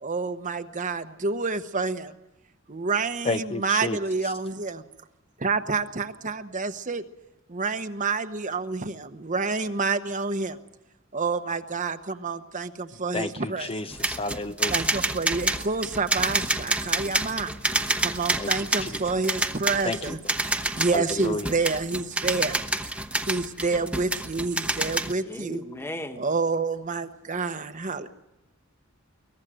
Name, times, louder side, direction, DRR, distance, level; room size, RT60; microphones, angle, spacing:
voice 1, 0.0-2.1 2.7-4.8 5.4-7.0 7.5-10.6 11.1-13.7 14.7-17.5 18.0-20.2 20.5-22.6 23.3-25.6 26.2-28.1, right 4 dB, 40° right, 9 dB, 1.0 m, -28 dB
voice 2, 3.2-4.3 13.1-14.7 18.4-18.5 18.8-19.0 19.8-20.2 20.8-21.5, left 2 dB, 30° left, 10 dB, 0.7 m, -31 dB
sound 1, 13.9-25.1, right 2 dB, 5° right, 1.1 m, -28 dB
voice 3, 25.2-26.2, left 1 dB, 10° left, 7 dB, 1.6 m, -36 dB
23.0 x 19.5 x 7.7 m, 0.93 s
head